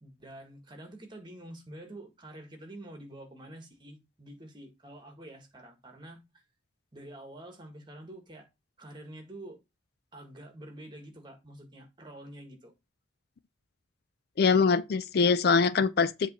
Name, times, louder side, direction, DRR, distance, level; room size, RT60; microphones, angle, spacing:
voice 1, 0.0-6.4 6.9-8.5 8.8-9.6 10.1-12.7, right 1 dB, 25° right, 1.6 m, -47 dB
voice 2, 14.4-16.3, left 5 dB, 55° left, 0.4 m, -23 dB
7.9 x 3.2 x 5.4 m
head